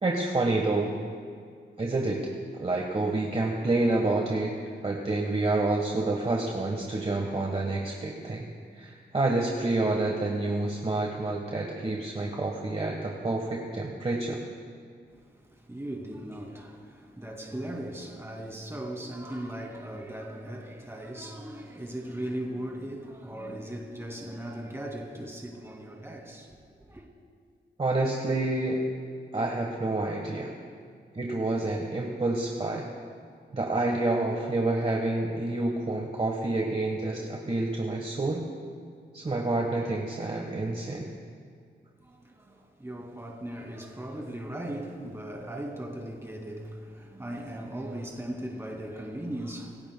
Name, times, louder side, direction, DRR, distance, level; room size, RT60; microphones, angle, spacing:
voice 1, 0.0-0.9 1.8-2.2 2.6-4.5 4.8-8.5 8.8-14.4 27.8-28.8 29.3-30.5 31.1-32.9 33.5-38.4 39.1-41.1, right 2 dB, 30° right, 1.3 m, -28 dB
voice 2, 15.1-27.1 42.0-49.9, right 1 dB, 15° right, 2.4 m, -38 dB
27.0 x 16.0 x 2.3 m
wide cardioid pair, 130°, 19 cm